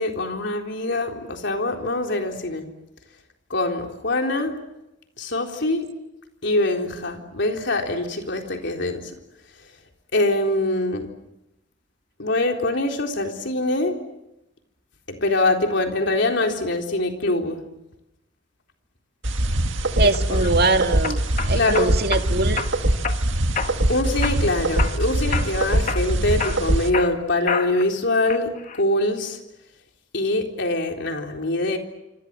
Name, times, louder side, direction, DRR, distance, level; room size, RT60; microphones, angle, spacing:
voice 1, 0.0-2.6 3.5-4.5 5.2-5.9 6.4-9.1 10.1-11.1 12.2-13.9 15.1-17.6 20.3-20.4 21.5-21.9 23.9-29.4 30.1-31.8, left 2 dB, 60° left, 3 dB, 3.9 m, -24 dB
sound 1, 19.2-26.9, right 1 dB, 70° right, 2.0 m, -23 dB
voice 2, 19.9-21.2 21.5-22.7, right 3 dB, 55° right, 6 dB, 2.1 m, -22 dB
sound 2, 20.1-20.5 21.0-22.2 22.6-23.2 23.5-23.9 24.2-25.0 25.3-25.6 25.9-27.9 28.3-28.8, left 5 dB, 40° left, 1.5 m, -29 dB
27.0 x 27.0 x 7.7 m, 0.90 s
head